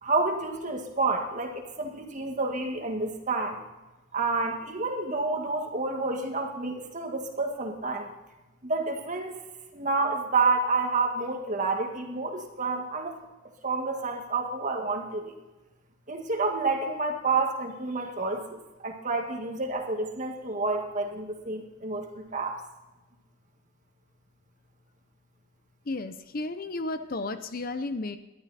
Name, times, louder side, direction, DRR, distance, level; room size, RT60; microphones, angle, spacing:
voice 1, 0.0-3.6 4.1-8.1 8.6-9.4 9.7-13.2 13.6-15.3 16.1-22.6, right 3 dB, 35° right, 2 dB, 1.9 m, -29 dB
voice 2, 25.9-28.2, left 2 dB, 45° left, 10 dB, 0.7 m, -33 dB
20.0 x 12.5 x 4.2 m, 1.1 s
head